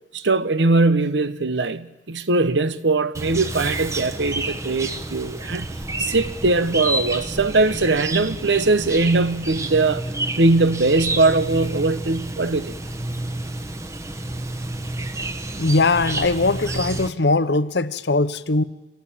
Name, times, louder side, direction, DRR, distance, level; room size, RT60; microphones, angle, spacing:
voice 1, 0.1-5.7 6.0-10.0 10.4-12.7, right 3 dB, 85° right, 1.1 m, -20 dB
Chirp tweet, 3.1-17.1, right 2 dB, 15° right, 1.1 m, -29 dB
voice 2, 15.6-18.6, left 3 dB, 70° left, 0.9 m, -20 dB
26.5 x 17.0 x 8.9 m
head